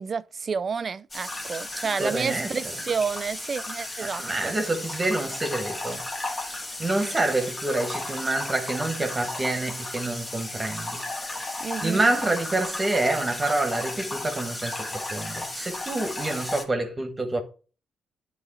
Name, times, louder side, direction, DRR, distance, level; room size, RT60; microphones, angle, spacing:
voice 1, 0.0-4.5 11.6-12.0, right 5 dB, 40° right, 0.5 m, -30 dB
sound 1, 1.1-16.6, left 2 dB, 20° left, 2.0 m, -34 dB
voice 2, 1.8-2.5 4.0-6.0 6.3-6.5 6.8-11.0 11.8-17.4, right 2 dB, 25° right, 1.3 m, -27 dB
9.9 x 4.0 x 4.2 m
cardioid pair, 90°, 0 cm